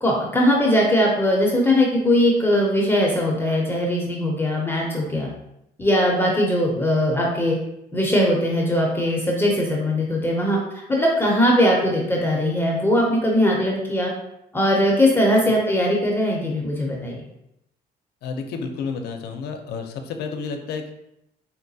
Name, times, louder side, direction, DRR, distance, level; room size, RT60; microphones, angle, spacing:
voice 1, 0.0-5.3 5.8-7.6 7.9-10.6 10.9-14.1 14.5-17.1, left 1 dB, 10° left, -2 dB, 0.5 m, -20 dB
voice 2, 18.2-20.9, left 5 dB, 75° left, 5 dB, 0.5 m, -30 dB
3.8 x 2.2 x 2.6 m, 0.82 s
cardioid pair, 110°, 17 cm